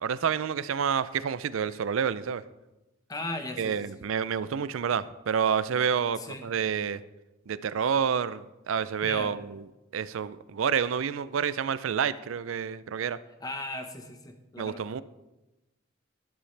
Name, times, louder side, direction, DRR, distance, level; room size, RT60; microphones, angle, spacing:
voice 1, 0.0-2.4 3.6-7.0 7.5-9.6 9.9-13.2 14.6-15.0, right 7 dB, 80° right, 16 dB, 0.4 m, -28 dB
voice 2, 3.1-3.9 6.2-6.4 9.0-9.3 13.4-14.8, left 2 dB, 20° left, 5 dB, 1.1 m, -37 dB
13.5 x 11.0 x 3.3 m, 1.0 s
head